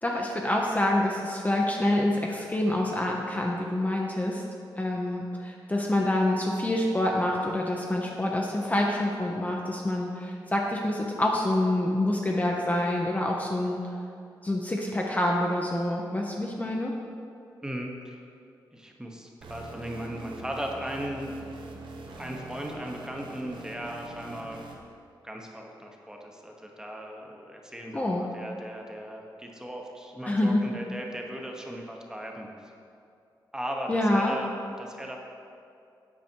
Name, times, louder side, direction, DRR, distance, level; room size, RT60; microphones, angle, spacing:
voice 1, 0.0-4.4 4.8-13.8 14.4-16.9 27.9-28.2 30.2-30.6 33.9-34.3, left 1 dB, 20° left, -1 dB, 0.6 m, -27 dB
voice 2, 17.6-18.2 18.7-21.3 22.2-24.6 25.2-32.7 33.5-34.5 34.8-35.2, equal, 10° right, 1 dB, 1.0 m, -37 dB
sound 1, 19.4-24.8, right 3 dB, 80° right, 0.9 m, -43 dB
8.5 x 4.9 x 4.4 m, 2.5 s
cardioid pair, 85°, 8 cm